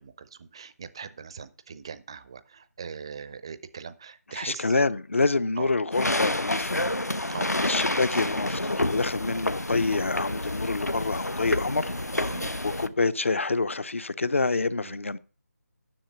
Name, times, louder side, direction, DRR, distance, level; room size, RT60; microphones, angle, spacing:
voice 1, 0.0-5.0 5.6-5.7 7.3-7.5 12.3-12.6 14.8-15.0, right 6 dB, 20° right, 0.5 m, -40 dB
voice 2, 4.3-6.8 7.6-11.9 12.6-15.2, left 3 dB, 50° left, 0.6 m, -27 dB
sound 1, 5.9-12.9, left 1 dB, 80° left, 1.0 m, -29 dB
10.0 x 7.0 x 5.8 m
figure-of-eight pair, 155°, 9 cm